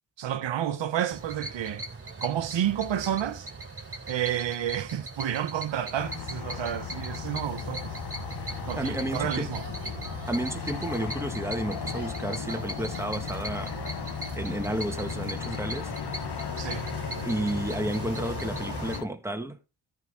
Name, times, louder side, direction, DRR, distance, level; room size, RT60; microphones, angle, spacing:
voice 1, 0.2-1.8 2.2-3.5 4.1-8.0 8.7-9.6 16.6-16.8, right 10 dB, 80° right, 0.9 m, -30 dB
sound 1, 1.1-19.0, right 3 dB, 30° right, 3.2 m, -39 dB
sound 2, 6.0-19.0, left 10 dB, 60° left, 0.9 m, -37 dB
voice 2, 8.8-9.5 10.3-13.7 14.4-15.9 17.2-19.6, right 1 dB, 5° right, 1.6 m, -32 dB
14.0 x 5.6 x 3.6 m
cardioid pair, 60°, 44 cm